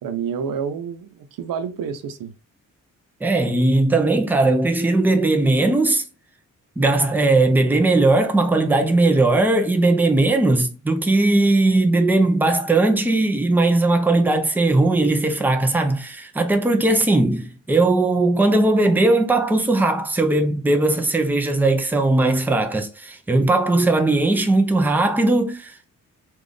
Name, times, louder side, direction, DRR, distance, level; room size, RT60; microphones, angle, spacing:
voice 1, 0.0-2.3, right 7 dB, 85° right, 0.7 m, -29 dB
voice 2, 3.2-6.0 6.8-25.8, right 2 dB, 5° right, 0.6 m, -18 dB
3.9 x 2.5 x 3.3 m
wide cardioid pair, 145°, 33 cm